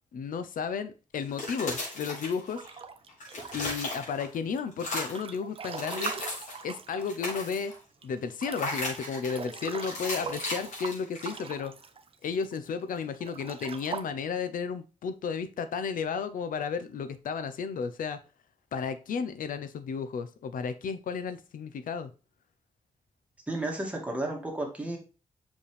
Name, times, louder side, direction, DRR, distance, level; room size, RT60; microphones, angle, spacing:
voice 1, 0.1-2.6 3.5-6.2 6.6-7.7 8.0-11.7 12.2-18.2 18.7-22.1, left 6 dB, 90° left, 11 dB, 0.7 m, -33 dB
sound 1, 1.2-2.8 3.1-4.4 4.7-5.3 5.7-6.6 7.0-7.8 8.5-9.4 9.8-11.5, left 2 dB, 65° left, 4.1 m, -36 dB
Breathing / Bathtub (filling or washing) / Splash splatter, 2.5-4.1 4.6-7.7 8.0-8.1 8.4-12.6 13.1-14.0, right 5 dB, 45° right, 0.6 m, -41 dB
voice 2, 23.5-25.0, right 2 dB, 10° right, 0 dB, 2.2 m, -32 dB
6.8 x 5.2 x 3.3 m, 0.33 s
wide cardioid pair, 150°, 14 cm